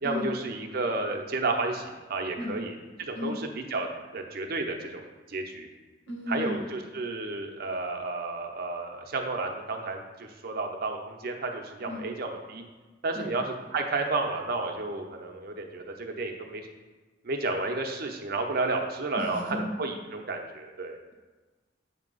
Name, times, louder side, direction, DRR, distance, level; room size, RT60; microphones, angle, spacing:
voice 1, 0.0-3.9 4.1-5.7 6.3-12.6 13.0-16.7 17.2-21.0, right 3 dB, 55° right, 3 dB, 0.7 m, -32 dB
voice 2, 6.1-6.7 11.9-12.1 13.1-13.4 19.2-19.7, left 2 dB, 90° left, -1 dB, 1.2 m, -34 dB
8.1 x 2.9 x 5.4 m, 1.2 s
head